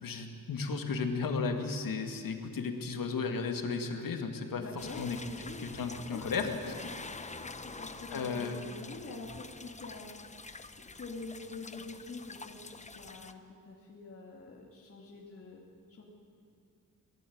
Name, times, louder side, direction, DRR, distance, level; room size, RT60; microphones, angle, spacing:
voice 1, 0.0-5.2 5.6-6.5 8.1-8.6, left 4 dB, 70° left, 5 dB, 2.4 m, -34 dB
voice 2, 4.5-6.5 7.2-10.4 10.7-15.6 15.9-16.0, left 3 dB, 40° left, -2 dB, 2.6 m, -46 dB
sound 1, 4.8-13.3, left 3 dB, 20° left, 0.9 m, -47 dB
23.5 x 18.0 x 8.8 m, 2.4 s
wide cardioid pair, 140°, 35 cm